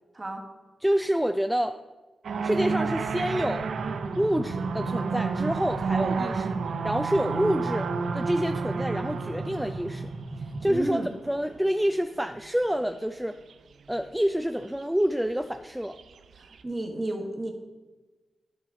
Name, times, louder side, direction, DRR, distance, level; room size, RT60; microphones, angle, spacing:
voice 1, 0.8-1.8 2.4-3.7 4.2-6.5 6.8-7.9 8.1-10.1 10.6-13.3 13.9-16.0, equal, 5° right, 7 dB, 0.3 m, -27 dB
sound 1, 2.2-11.9 12.3-12.9 13.5-13.6 13.9-14.0 14.3-14.4 14.8-14.9 15.9-16.6, right 5 dB, 80° right, 0.5 m, -31 dB
sound 2, 2.5-10.8, right 2 dB, 45° right, 0.7 m, -36 dB
voice 2, 10.6-11.1 16.4-17.5, right 1 dB, 30° right, 2 dB, 1.4 m, -32 dB
11.0 x 4.9 x 3.7 m, 1.2 s
wide cardioid pair, 95°, 0 cm